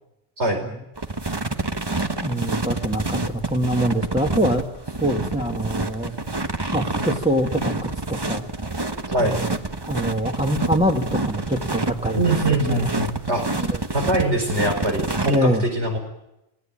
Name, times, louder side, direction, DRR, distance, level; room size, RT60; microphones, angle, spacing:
sound 1, 1.0-15.4, right 2 dB, 25° right, 1.2 m, -28 dB
voice 1, 2.2-6.1 6.7-7.7 8.1-8.5 9.2-9.5 9.9-12.2 12.5-12.9 13.6-13.8 15.3-15.6, equal, 5° right, 1 dB, 1.9 m, -24 dB
voice 2, 12.1-13.7 13.9-16.0, right 1 dB, 90° right, 5 dB, 4.8 m, -23 dB
26.5 x 20.0 x 8.8 m, 0.89 s
omnidirectional pair, 1.1 m